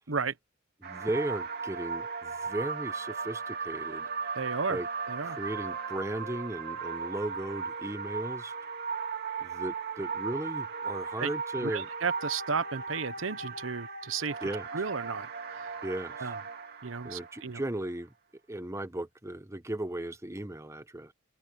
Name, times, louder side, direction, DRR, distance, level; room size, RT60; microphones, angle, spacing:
voice 1, 0.8-4.1 4.7-4.9 5.2-8.5 9.4-11.9 14.4-14.7 15.8-16.3 17.0-18.1 18.5-21.1, right 1 dB, 15° right, 1.1 m, -36 dB
sound 1, 0.8-17.4 17.8-17.9, right 5 dB, 55° right, 2.2 m, -37 dB
voice 2, 4.3-4.8 5.1-5.4 11.2-11.3 11.6-14.4 14.7-15.3 15.5-15.6 16.2-16.4 16.8-17.6, right 5 dB, 75° right, 1.0 m, -33 dB
open air
head